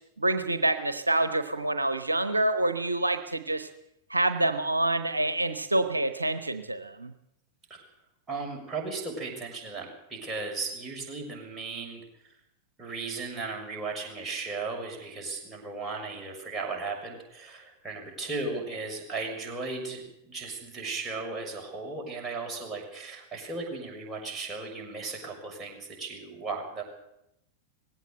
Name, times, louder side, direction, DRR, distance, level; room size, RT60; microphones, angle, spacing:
voice 1, 0.2-3.7 4.1-7.1, right 2 dB, 80° right, 10 dB, 1.0 m, -27 dB
voice 2, 8.3-12.4 12.8-26.8, right 3 dB, 15° right, 0 dB, 6.5 m, -36 dB
19.5 x 16.5 x 8.0 m, 0.82 s
figure-of-eight pair, 90°, 0 cm